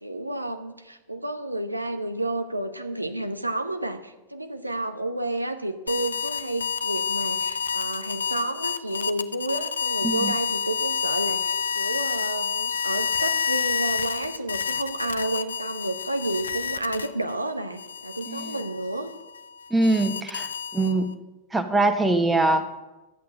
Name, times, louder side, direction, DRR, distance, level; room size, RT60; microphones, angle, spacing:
voice 1, 0.0-19.1, right 1 dB, 85° right, 8 dB, 0.9 m, -31 dB
sound 1, 5.9-17.3 17.8-21.1, left 6 dB, 70° left, 0.6 m, -29 dB
voice 2, 19.7-21.1 21.5-22.7, right 2 dB, 10° right, 8 dB, 1.3 m, -23 dB
13.0 x 8.4 x 7.7 m, 1.0 s
figure-of-eight pair, 90°, 0 cm